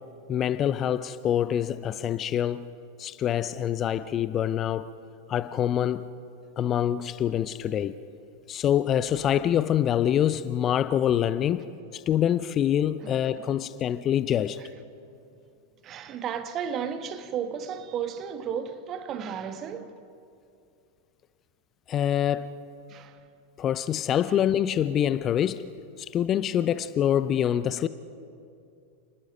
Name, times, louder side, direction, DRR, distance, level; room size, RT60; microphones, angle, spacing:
voice 1, 0.3-2.7 3.0-4.9 5.3-6.1 6.6-8.0 8.5-11.7 11.9-14.6 21.9-22.5 23.6-25.7 26.0-27.9, left 10 dB, 30° left, 0.5 m, -25 dB
voice 2, 15.8-20.0 22.9-23.2, right 7 dB, 30° right, 1.3 m, -33 dB
28.0 x 19.5 x 5.4 m
figure-of-eight pair, 90°, 0 cm